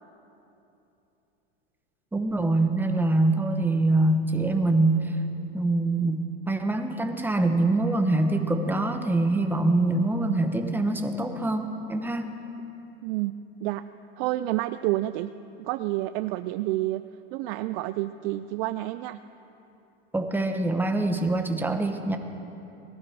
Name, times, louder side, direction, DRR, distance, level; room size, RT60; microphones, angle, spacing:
voice 1, 2.1-5.1 5.5-12.3 20.1-22.2, right 2 dB, 5° right, 5 dB, 1.0 m, -24 dB
voice 2, 13.0-13.8 14.2-15.3 15.6-17.0 17.3-19.2, right 16 dB, 65° right, 12 dB, 0.5 m, -29 dB
18.5 x 12.5 x 4.7 m, 2.9 s
supercardioid pair, 115°, 31 cm